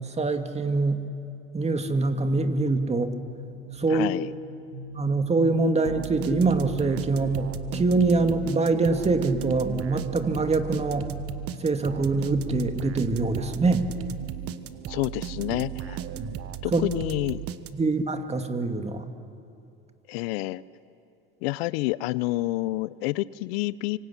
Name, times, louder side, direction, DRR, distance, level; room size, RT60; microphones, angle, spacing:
voice 1, 0.2-1.0 1.5-3.1 3.8-4.1 4.9-11.1 11.6-13.9 16.2-16.3 16.7-16.8 17.7-19.1, right 3 dB, 20° right, 7 dB, 2.3 m, -24 dB
sound 1, 2.3-16.4, right 3 dB, 80° right, 2.1 m, -43 dB
voice 2, 3.9-4.3 14.9-16.0 16.6-17.4 20.1-20.6 21.4-24.0, left 19 dB, 75° left, 19 dB, 0.7 m, -28 dB
sound 2, 5.8-18.0, right 11 dB, 50° right, 1.4 m, -36 dB
25.5 x 25.0 x 8.4 m, 2.6 s
hypercardioid pair, 85°, 31 cm